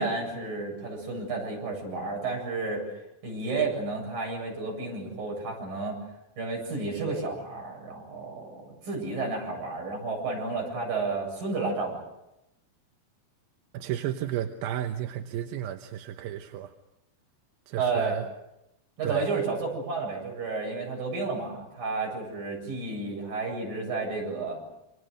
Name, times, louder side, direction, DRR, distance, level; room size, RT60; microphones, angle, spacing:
voice 1, 0.0-2.9 3.2-6.0 6.4-12.0 17.8-18.2 19.0-24.6, right 3 dB, 70° right, 0 dB, 9.8 m, -31 dB
voice 2, 13.7-16.7 17.7-18.2 19.0-19.3, right 11 dB, 85° right, 6 dB, 3.0 m, -33 dB
29.0 x 26.0 x 6.6 m, 0.90 s
omnidirectional pair, 4.1 m